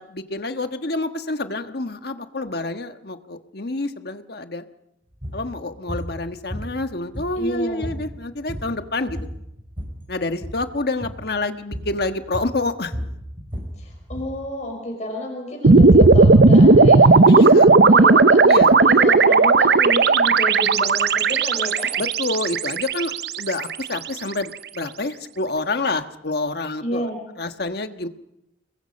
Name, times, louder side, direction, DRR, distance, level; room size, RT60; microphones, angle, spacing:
voice 1, 0.0-4.6 5.3-9.2 10.1-12.9 17.2-17.8 18.4-19.0 22.0-27.1 27.4-28.1, left 2 dB, 60° left, 8 dB, 1.4 m, -28 dB
sound 1, 5.1-5.4 5.9-6.1 6.5-7.5 7.8-8.1 8.3-8.8 9.1-10.0 10.3-10.6 11.0-11.2 11.7-12.0 12.3-14.4, equal, 30° right, 6.2 m, -32 dB
voice 2, 7.4-7.9 13.7-18.4 18.8-22.0 26.8-27.2, left 1 dB, 40° left, 1 dB, 5.5 m, -30 dB
sound 2, 15.6-23.9, right 3 dB, 65° right, 0.8 m, -14 dB
29.5 x 21.5 x 5.3 m, 0.83 s
head